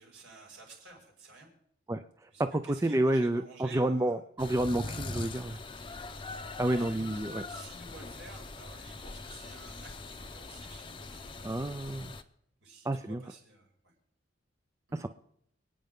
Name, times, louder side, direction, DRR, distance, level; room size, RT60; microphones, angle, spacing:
voice 1, 0.0-1.5 2.3-4.2 6.7-12.1 12.6-13.9 14.9-15.0, right 3 dB, 75° right, -1 dB, 5.7 m, -52 dB
voice 2, 2.5-5.6 6.6-7.4 11.4-12.1 12.9-13.2 15.0-15.1, right 1 dB, 15° right, 9 dB, 0.5 m, -29 dB
sound 1, 4.4-12.2, left 3 dB, 25° left, 0.7 m, -42 dB
27.0 x 9.1 x 3.7 m, 0.72 s
head